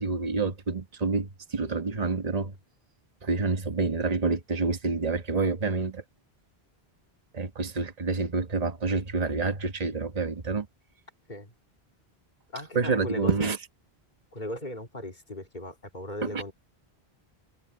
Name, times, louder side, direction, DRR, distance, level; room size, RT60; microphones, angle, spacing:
voice 1, 0.0-2.5 3.2-6.0 7.3-10.7 12.7-13.6 16.3-16.4, right 4 dB, 40° right, 1.3 m, -28 dB
voice 2, 12.5-13.5 14.3-16.5, left 1 dB, 45° left, 3.2 m, -37 dB
omnidirectional pair, 1.0 m